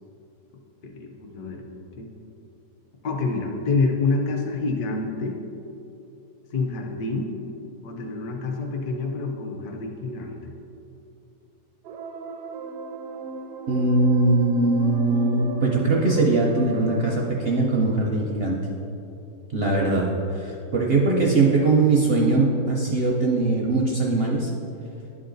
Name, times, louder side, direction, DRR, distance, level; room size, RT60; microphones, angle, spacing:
voice 1, 0.8-2.1 3.0-5.4 6.5-7.3 7.8-10.5, left 3 dB, 65° left, 2 dB, 1.3 m, -27 dB
sound 1, 11.8-17.1, right 3 dB, 80° right, 1.2 m, -36 dB
voice 2, 13.7-18.6 19.5-24.5, right 3 dB, 60° right, -2 dB, 0.6 m, -21 dB
11.0 x 4.0 x 3.9 m, 2.8 s
omnidirectional pair, 1.8 m